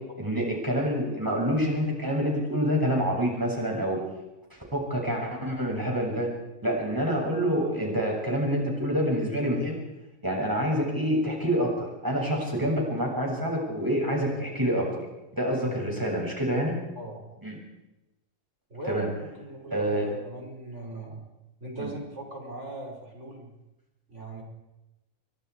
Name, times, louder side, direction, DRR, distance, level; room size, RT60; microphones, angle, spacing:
voice 1, 0.2-4.0 4.7-6.3 6.6-9.8 10.2-14.9 15.3-16.7 17.4-17.6 18.8-19.1 19.7-20.1 21.8-21.9, equal, 15° right, -1 dB, 7.0 m, -27 dB
voice 2, 16.9-17.4 18.7-21.2 21.6-23.5 24.1-24.4, right 1 dB, 55° right, 1 dB, 5.7 m, -39 dB
29.0 x 24.5 x 4.8 m, 0.98 s
omnidirectional pair, 1.4 m